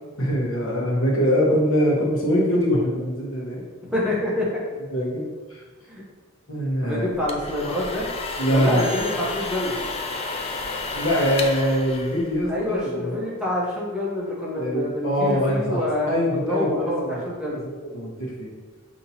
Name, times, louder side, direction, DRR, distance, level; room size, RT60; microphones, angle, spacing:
voice 1, 0.2-3.6 4.9-5.6 6.5-7.0 8.4-8.9 10.9-13.2 14.5-17.2 17.5-17.6 17.9-18.5, equal, 75° left, -3 dB, 1.0 m, -23 dB
voice 2, 3.8-4.6 5.9-6.0 6.8-8.1 8.5-9.8 12.5-16.1 16.5-17.6, left 1 dB, 5° right, -6 dB, 0.8 m, -27 dB
sound 1, 7.1-12.8, left 3 dB, 30° left, 0.3 m, -31 dB
5.6 x 2.8 x 2.7 m, 1.4 s
head